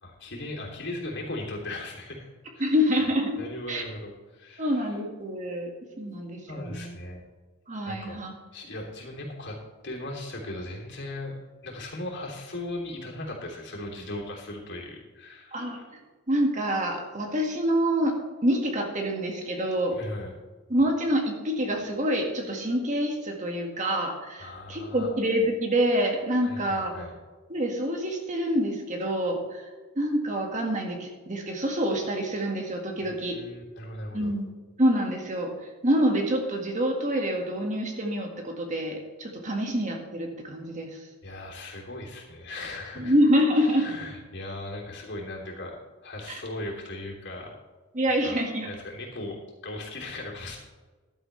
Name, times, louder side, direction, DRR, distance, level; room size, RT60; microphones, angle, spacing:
voice 1, 0.0-2.3 2.5-3.1 3.4-5.0 6.5-7.2 7.8-8.2 8.5-9.6 9.8-15.9 19.9-20.4 24.4-25.1 26.4-27.1 33.0-34.3 41.2-43.2 43.6-45.8 46.0-47.5 48.2-48.4 48.7-49.4 49.6-50.6, left 1 dB, 55° left, -1 dB, 3.2 m, -38 dB
voice 2, 2.6-3.4 3.7-3.8 4.6-5.7 6.0-6.9 7.7-8.3 15.5-16.0 16.3-18.2 18.4-20.0 20.7-26.9 27.5-29.7 30.0-33.4 34.1-34.5 34.8-35.5 35.8-41.0 43.0-43.9 46.3-46.4 47.9-48.7, equal, 35° right, 2 dB, 1.9 m, -26 dB
14.0 x 11.5 x 3.4 m, 1.3 s
head